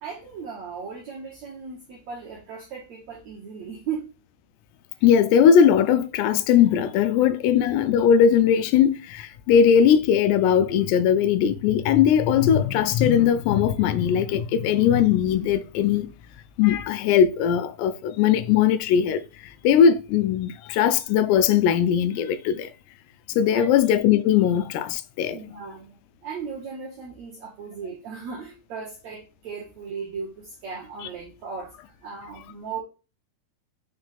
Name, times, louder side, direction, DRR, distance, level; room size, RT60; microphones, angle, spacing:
voice 1, 0.0-4.1 7.2-7.3 23.5-23.7 25.3-32.8, right 5 dB, 65° right, 1.8 m, -37 dB
voice 2, 5.0-16.1 16.6-19.2 19.6-22.7 23.4-25.4, left 8 dB, 85° left, 2.7 m, -19 dB
6.3 x 3.4 x 5.6 m
omnidirectional pair, 4.8 m